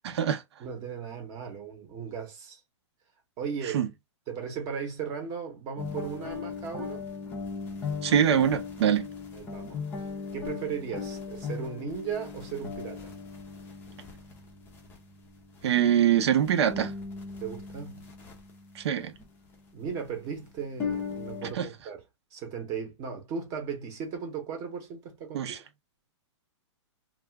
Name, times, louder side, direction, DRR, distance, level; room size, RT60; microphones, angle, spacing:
voice 1, 0.6-2.6 3.4-3.9 4.3-7.1 9.3-9.8 10.3-13.2 17.4-18.0 19.7-22.0 22.3-25.5, right 6 dB, 25° right, 0.9 m, -36 dB
sound 1, 5.8-21.5, left 5 dB, 15° left, 0.6 m, -39 dB
voice 2, 8.0-9.1 15.6-16.9 18.7-19.1 21.6-21.7 25.3-25.6, right 9 dB, 65° right, 0.7 m, -24 dB
2.4 x 2.4 x 3.3 m
hypercardioid pair, 160°, 15 cm